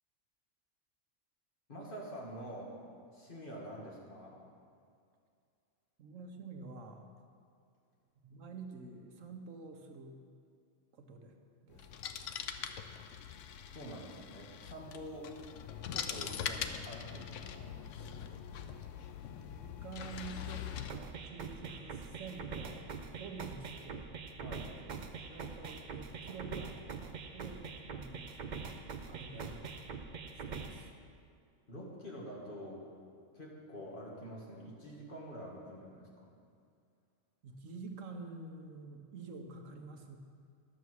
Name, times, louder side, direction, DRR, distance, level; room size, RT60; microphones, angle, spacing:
voice 1, 1.7-2.7 3.1-4.4 13.7-15.3 15.9-17.8 24.4-24.8 29.3-29.6 31.7-32.9 33.3-36.3, equal, 40° left, -4 dB, 2.1 m, -47 dB
voice 2, 6.0-7.1 8.2-10.2 10.9-11.4 11.6-12.0 19.5-22.9 23.1-24.1 25.3-26.9 27.3-28.5 29.1-29.7 30.3-30.9 37.4-40.2, right 4 dB, 75° right, 4 dB, 1.3 m, -48 dB
sound 1, 11.7-20.9, left 8 dB, 75° left, 0.9 m, -43 dB
sound 2, 20.9-30.9, right 5 dB, 50° right, 0.6 m, -44 dB
11.5 x 6.9 x 6.3 m, 2.3 s
omnidirectional pair, 1.3 m